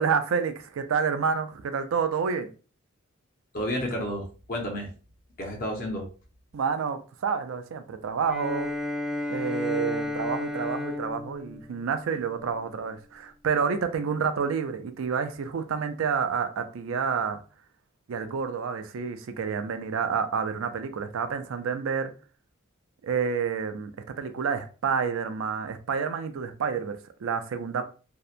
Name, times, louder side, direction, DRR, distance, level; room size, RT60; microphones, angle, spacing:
voice 1, 0.0-2.5 6.5-8.7 9.3-17.4 18.1-22.1 23.0-27.8, right 6 dB, 80° right, 0.4 m, -29 dB
voice 2, 3.5-4.9 5.4-6.1, equal, 45° left, 0.6 m, -31 dB
Bowed string instrument, 8.2-12.7, left 2 dB, 5° right, 0.3 m, -33 dB
2.7 x 2.1 x 2.4 m
head